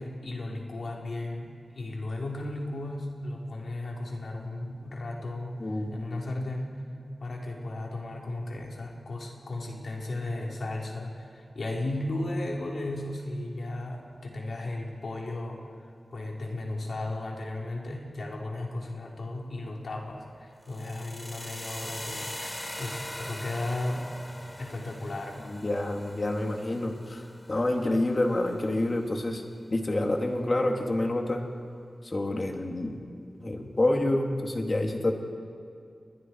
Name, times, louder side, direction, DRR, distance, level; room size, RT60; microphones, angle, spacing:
voice 1, 0.0-6.8 7.2-15.6 16.1-24.1 24.6-25.6, left 2 dB, 70° left, -2 dB, 4.5 m, -35 dB
voice 2, 5.6-6.0 25.5-27.2 27.5-29.4 29.7-31.4 32.0-33.0 33.4-35.1, left 1 dB, 40° left, 2 dB, 2.9 m, -28 dB
sound 1, 20.6-28.7, left 1 dB, 15° left, 2.5 m, -42 dB
30.0 x 22.5 x 4.9 m, 2.3 s
wide cardioid pair, 80°, 0 cm